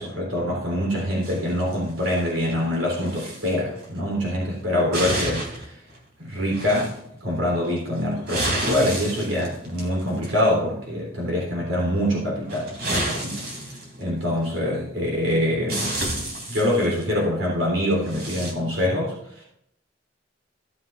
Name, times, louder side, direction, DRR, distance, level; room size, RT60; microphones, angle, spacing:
voice 1, 0.0-5.8 6.2-6.9 7.2-13.4 14.0-16.2 16.5-19.4, left 1 dB, 90° right, -4 dB, 3.5 m, -25 dB
sound 1, 1.2-2.5 2.9-3.5 3.8-4.0 4.6-5.6 5.9-6.0 6.5-7.1 7.8-10.5 12.4-14.5 15.3-15.4 15.7-17.0 17.9-18.5, right 1 dB, 55° right, 3.2 m, -31 dB
16.5 x 7.6 x 2.5 m, 0.76 s
head